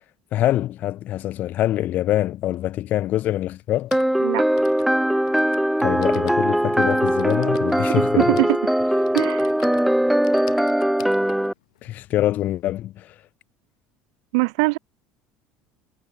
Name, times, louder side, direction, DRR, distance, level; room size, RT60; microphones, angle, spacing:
voice 1, 0.3-3.9 5.8-8.3 11.8-13.1, left 13 dB, 55° left, 2.5 m, -24 dB
Typing, 2.5-2.6 3.6-12.7, left 15 dB, 85° left, 7.4 m, -46 dB
sound 1, 3.9-11.5, equal, 5° right, 1.8 m, -20 dB
voice 2, 8.2-8.6 9.1-9.5 14.3-14.8, right 28 dB, 75° right, 1.5 m, -21 dB
hypercardioid pair, 80°, 3 cm